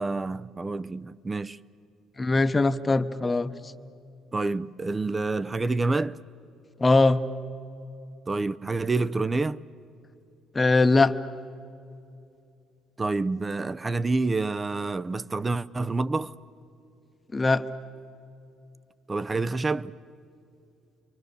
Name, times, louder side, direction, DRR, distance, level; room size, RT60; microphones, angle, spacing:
voice 1, 0.0-1.6 4.3-6.2 8.3-9.6 13.0-16.3 19.1-20.0, right 3 dB, 25° right, 0.6 m, -28 dB
voice 2, 2.2-3.5 6.8-7.2 10.5-11.2 17.3-17.6, left 3 dB, 25° left, 0.9 m, -21 dB
29.5 x 24.0 x 6.9 m
supercardioid pair, 80°, 0 cm